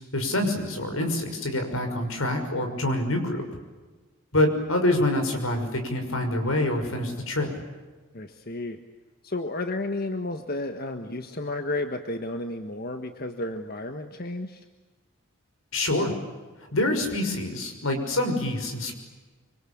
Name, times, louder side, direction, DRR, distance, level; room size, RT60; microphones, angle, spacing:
voice 1, 0.1-3.5 4.3-7.5 15.7-16.1 16.7-18.9, left 1 dB, 80° left, 5 dB, 6.0 m, -26 dB
voice 2, 8.1-8.8 9.2-14.6, left 2 dB, 45° left, 6 dB, 1.5 m, -32 dB
26.0 x 25.5 x 8.7 m, 1.3 s
head